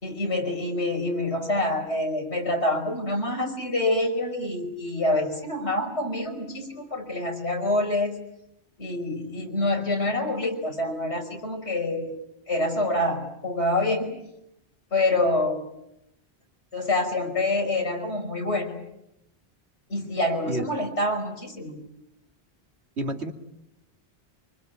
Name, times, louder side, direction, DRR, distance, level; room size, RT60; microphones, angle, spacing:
voice 1, 0.0-8.1 8.8-12.2 12.5-14.2 14.9-15.7 16.7-18.8 19.9-21.8, left 1 dB, 85° left, 3 dB, 5.8 m, -26 dB
voice 2, 23.0-23.3, right 1 dB, 85° right, 4 dB, 2.9 m, -29 dB
26.0 x 24.5 x 9.2 m, 0.83 s
omnidirectional pair, 1.1 m